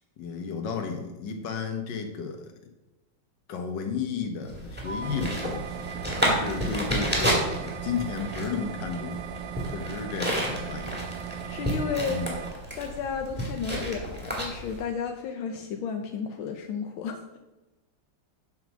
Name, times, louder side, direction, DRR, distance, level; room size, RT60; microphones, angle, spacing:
voice 1, 0.2-2.5 3.5-5.6 6.1-9.2 9.6-11.0 12.1-12.3, left 6 dB, 65° left, 4 dB, 1.8 m, -33 dB
sound 1, 4.4-14.8, equal, 5° right, 2.2 m, -31 dB
sound 2, 5.0-12.5, right 8 dB, 70° right, 1.3 m, -38 dB
voice 2, 11.5-12.2 12.8-17.2, left 6 dB, 80° left, 5 dB, 1.6 m, -32 dB
8.2 x 5.6 x 6.1 m, 1.1 s
omnidirectional pair, 2.2 m